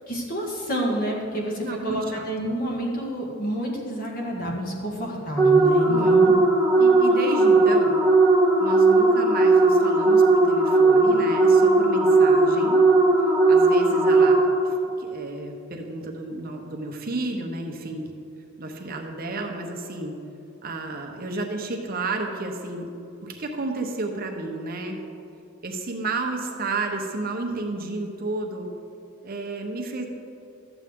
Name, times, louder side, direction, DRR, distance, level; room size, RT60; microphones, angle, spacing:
voice 1, 0.1-6.3, equal, 45° left, -2 dB, 1.7 m, -28 dB
voice 2, 1.6-2.3 5.9-6.2 6.8-8.0 8.6-12.9 13.5-18.1 18.6-20.2 20.6-22.9 23.2-25.0 25.6-28.7 29.2-30.1, right 2 dB, 45° right, 2 dB, 0.9 m, -32 dB
sound 1, 5.4-14.8, right 3 dB, 10° left, 1.4 m, -18 dB
12.5 x 8.1 x 3.7 m, 2.6 s
head